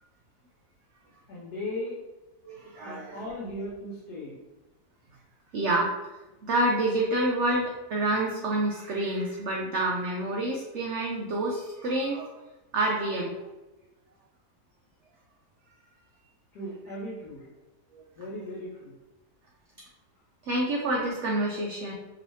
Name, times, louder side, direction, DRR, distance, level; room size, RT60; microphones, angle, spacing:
voice 1, 1.3-2.0 2.8-4.4 16.5-17.5 18.2-18.9, left 1 dB, 70° left, -5 dB, 1.3 m, -37 dB
voice 2, 2.4-3.2 5.5-5.9 6.4-12.3 12.7-13.3 17.9-18.0 20.4-21.9, right 1 dB, 80° right, -1 dB, 0.6 m, -28 dB
3.0 x 2.9 x 3.0 m, 1.1 s
omnidirectional pair, 1.7 m